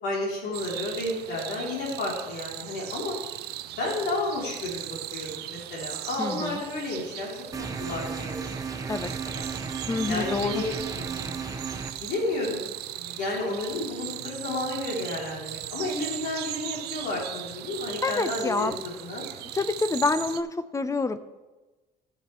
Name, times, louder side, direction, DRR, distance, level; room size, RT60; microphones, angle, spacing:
voice 1, 0.0-3.2 3.7-7.3 7.6-8.5 9.1-9.5 10.1-11.5 11.9-12.7 12.9-19.3, left 2 dB, 80° left, -3 dB, 3.0 m, -32 dB
sound 1, 0.5-20.4, right 14 dB, 75° right, 0.4 m, -38 dB
voice 2, 6.2-6.6 8.9-9.1 9.9-10.6 18.0-18.7 19.6-20.5 20.7-21.2, left 3 dB, 20° left, 13 dB, 0.5 m, -27 dB
sound 2, 7.5-11.9, right 5 dB, 20° right, 0.8 m, -34 dB
15.5 x 6.0 x 3.1 m, 1.2 s
cardioid pair, 110°, 17 cm